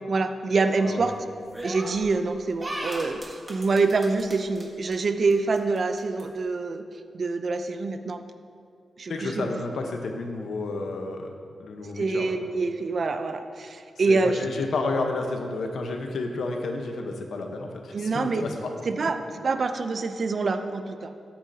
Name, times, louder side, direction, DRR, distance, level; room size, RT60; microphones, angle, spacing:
voice 1, 0.1-1.1 1.6-6.8 7.1-8.2 9.0-9.5 11.9-14.5 17.9-18.4 18.8-21.1, right 3 dB, 50° right, 8 dB, 0.5 m, -26 dB
sound 1, 1.5-2.1 2.6-4.6 4.9-5.0 5.3-6.2, right 1 dB, 15° right, 1.6 m, -36 dB
voice 2, 9.1-12.3 14.1-18.7, left 3 dB, 80° left, 3 dB, 1.0 m, -31 dB
13.0 x 8.7 x 2.8 m, 2.4 s
wide cardioid pair, 120°, 0 cm